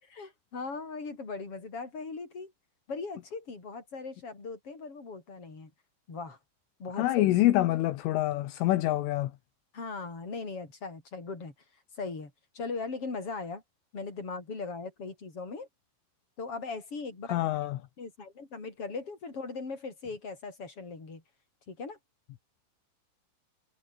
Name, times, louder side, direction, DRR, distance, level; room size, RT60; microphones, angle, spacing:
voice 1, 0.0-2.5 2.9-5.7 6.1-6.4 6.8-7.3 9.7-11.5 12.0-13.6 13.9-15.7 16.4-17.4 18.0-21.2 21.7-22.0, left 4 dB, 25° left, 6.7 m, -39 dB
voice 2, 7.0-9.3 17.3-17.8, left 15 dB, 75° left, 3.7 m, -26 dB
omnidirectional pair, 5.8 m